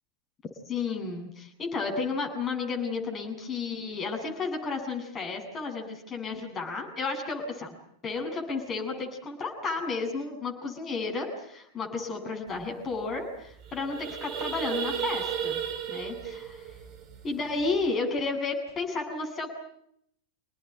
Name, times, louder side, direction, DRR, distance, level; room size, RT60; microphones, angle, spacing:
voice 1, 0.7-7.7 8.0-15.6 15.9-16.6 17.2-19.5, left 4 dB, 25° left, 1 dB, 7.8 m, -32 dB
sound 1, 12.6-12.7 12.9-13.2 13.5-17.8, right 8 dB, 40° right, 3.5 m, -34 dB
27.5 x 19.5 x 9.5 m, 0.73 s
figure-of-eight pair, 90°, 0 cm